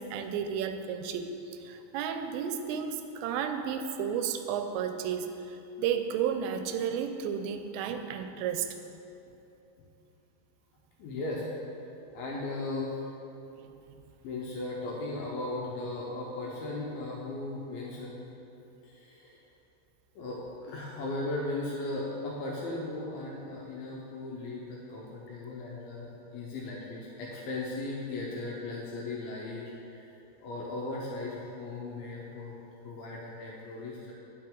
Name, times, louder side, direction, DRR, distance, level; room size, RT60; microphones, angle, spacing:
voice 1, 0.0-8.7 13.6-13.7, right 7 dB, 85° right, 7 dB, 2.8 m, -33 dB
voice 2, 11.0-11.4 12.1-13.0 14.2-18.2 18.8-19.4 20.2-32.5 32.8-34.1, left 2 dB, 75° left, -4 dB, 2.3 m, -37 dB
9.7 x 7.4 x 3.8 m, 2.8 s
omnidirectional pair, 5.1 m